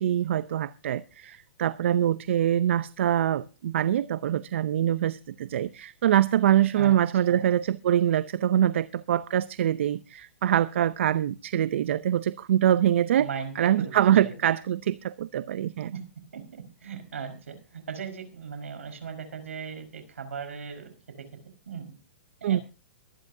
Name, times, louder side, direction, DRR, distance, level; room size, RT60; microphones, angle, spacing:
voice 1, 0.0-13.3 13.6-15.9 22.4-22.6, right 11 dB, 70° right, 0.6 m, -24 dB
voice 2, 13.2-14.5 15.9-16.0 16.3-22.0 22.4-22.6, right 6 dB, 85° right, 5.0 m, -38 dB
24.0 x 10.5 x 2.7 m
hypercardioid pair, 130°, 7 cm